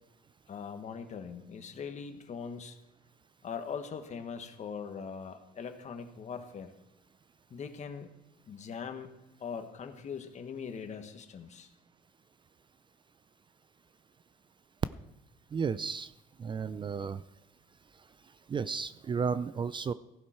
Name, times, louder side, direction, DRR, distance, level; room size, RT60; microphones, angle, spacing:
voice 1, 0.5-2.8 3.4-6.7 7.5-8.1 8.5-9.1 9.4-11.7, left 6 dB, 45° left, 7 dB, 1.5 m, -41 dB
voice 2, 15.5-16.1 16.4-17.2 18.5-19.9, right 5 dB, 30° right, 15 dB, 0.4 m, -33 dB
16.0 x 11.0 x 4.5 m, 0.92 s
cardioid pair, 110°, 17 cm